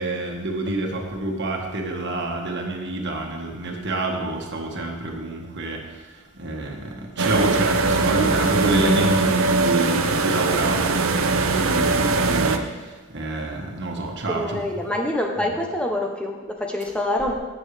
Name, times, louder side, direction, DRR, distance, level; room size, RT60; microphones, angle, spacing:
voice 1, 0.0-14.6 15.4-15.5, right 2 dB, 55° right, 1 dB, 1.5 m, -27 dB
sound 1, 7.2-12.6, right 3 dB, 75° right, 0.7 m, -21 dB
voice 2, 14.3-17.3, left 1 dB, 5° left, 1 dB, 0.8 m, -26 dB
16.5 x 6.4 x 3.3 m, 1.2 s
head